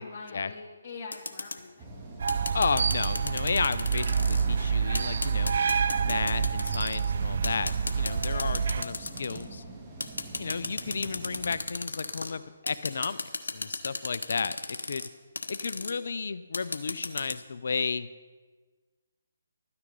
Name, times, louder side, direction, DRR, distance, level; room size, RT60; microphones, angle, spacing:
voice 1, 0.0-2.0 8.3-8.6 15.8-15.9, left 4 dB, 35° left, -3 dB, 2.2 m, -44 dB
sound 1, 1.1-1.6 2.3-4.4 4.9-7.1 7.4-9.4 10.0-12.3 12.7-15.1 15.4-15.9 16.5-17.4, left 3 dB, 85° left, 1.0 m, -34 dB
sound 2, 1.8-11.6, right 2 dB, 20° right, 1.7 m, -43 dB
sound 3, 2.2-8.8, right 6 dB, 60° right, 0.4 m, -28 dB
voice 2, 2.5-5.5 6.0-9.6 10.4-15.0 15.5-18.1, left 5 dB, 65° left, 14 dB, 0.6 m, -33 dB
12.5 x 9.8 x 5.3 m, 1.4 s
hypercardioid pair, 150°, 0 cm